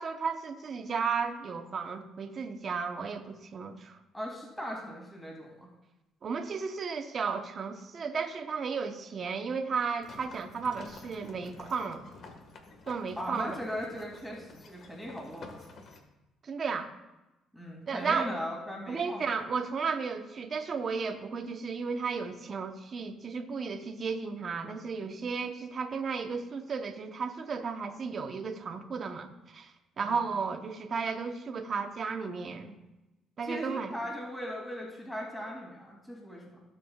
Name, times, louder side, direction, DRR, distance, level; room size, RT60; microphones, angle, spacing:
voice 1, 0.0-4.0 6.2-12.1 12.9-13.6 16.4-16.9 17.9-18.3 18.9-29.7 30.0-32.8 33.4-34.0, right 5 dB, 45° right, 5 dB, 1.0 m, -34 dB
voice 2, 4.1-5.7 13.2-15.8 17.5-19.4 30.0-30.3 33.4-36.6, equal, 5° left, -2 dB, 2.8 m, -39 dB
sound 1, 10.0-16.0, left 3 dB, 55° left, 1.6 m, -50 dB
16.5 x 7.1 x 2.4 m, 0.99 s
cardioid pair, 95°, 0 cm